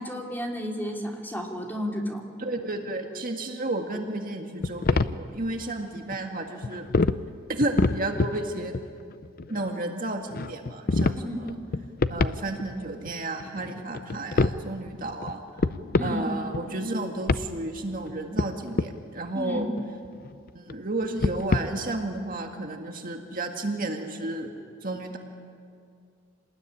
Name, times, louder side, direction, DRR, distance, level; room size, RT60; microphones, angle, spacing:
voice 1, 0.0-2.2 11.1-11.4 15.9-16.2 19.3-19.7, equal, 10° left, 0 dB, 3.1 m, -32 dB
voice 2, 2.4-6.9 7.5-8.8 9.5-11.6 12.1-15.4 16.0-19.7 20.5-24.5 24.8-25.2, right 2 dB, 45° right, 3 dB, 1.9 m, -32 dB
sound 1, 4.6-5.2 6.1-6.2 6.6-7.2 7.5-8.4 8.7-9.7 10.3-11.2 11.5-12.8 13.1-13.2 13.4-14.6 15.2-15.3 15.6-16.2 16.5-16.9 17.3-17.5 18.1-18.9 19.6-20.7 21.0-21.6, left 3 dB, 45° left, 0.6 m, -26 dB
27.5 x 20.0 x 9.9 m, 2.3 s
head